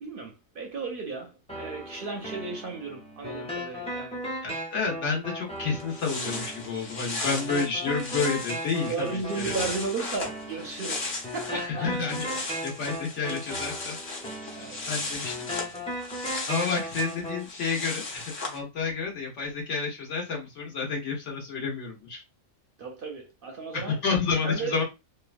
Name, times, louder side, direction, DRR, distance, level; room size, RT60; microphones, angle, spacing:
voice 1, 0.0-4.2 7.1-7.4 8.9-12.2 13.9-14.0 14.5-14.8 22.8-24.0 24.4-24.8, right 4 dB, 60° right, 0.6 m, -35 dB
sound 1, 1.5-17.5, equal, 10° left, 0.4 m, -37 dB
voice 2, 4.4-9.1 9.3-9.5 11.5-14.0 14.9-15.7 16.5-22.2 23.7-24.8, left 5 dB, 65° left, 1.3 m, -30 dB
sound 2, 5.5-5.6 5.8-11.6 11.9-18.6, left 3 dB, 45° left, 0.8 m, -36 dB
3.0 x 2.2 x 2.4 m
omnidirectional pair, 1.3 m